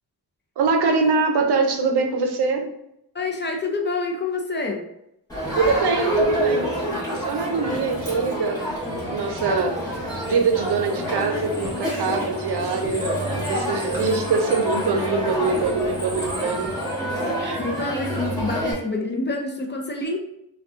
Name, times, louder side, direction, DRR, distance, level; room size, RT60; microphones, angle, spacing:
voice 1, 0.6-2.7 5.6-6.7 7.1-8.7 9.1-16.8 17.4-17.6, right 4 dB, 70° right, 4 dB, 0.6 m, -24 dB
voice 2, 3.1-4.9 17.6-20.2, left 3 dB, 25° left, 2 dB, 0.4 m, -27 dB
Crowd, 5.3-18.7, right 1 dB, 10° left, 1.2 m, -27 dB
3.5 x 2.3 x 2.4 m, 0.81 s
cardioid pair, 85°, 42 cm